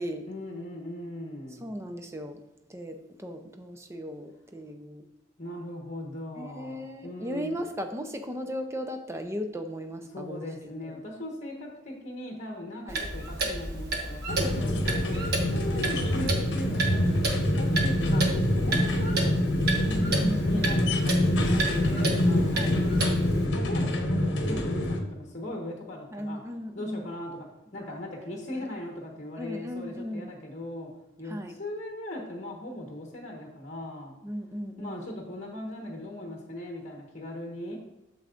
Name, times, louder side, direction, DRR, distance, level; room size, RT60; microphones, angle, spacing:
voice 1, 0.3-1.7 5.4-7.6 10.1-15.2 15.5-18.3 18.5-19.7 20.4-22.9 23.5-26.4 26.7-27.5 27.7-30.9 31.2-34.1 34.8-37.8, left 1 dB, 35° left, 0 dB, 1.3 m, -39 dB
voice 2, 1.6-2.4 2.7-5.1 6.4-10.5 10.8-10.9 12.9-13.0 19.8-20.8 22.5-22.7 26.1-27.0 27.8-28.7 29.4-30.3 31.2-31.6 34.2-35.1, equal, 15° right, 6 dB, 0.6 m, -37 dB
Clock, 12.9-23.5, right 2 dB, 55° right, 1.2 m, -32 dB
sound 1, 14.3-25.0, left 1 dB, 65° left, 1.0 m, -25 dB
8.4 x 6.9 x 2.5 m, 0.94 s
head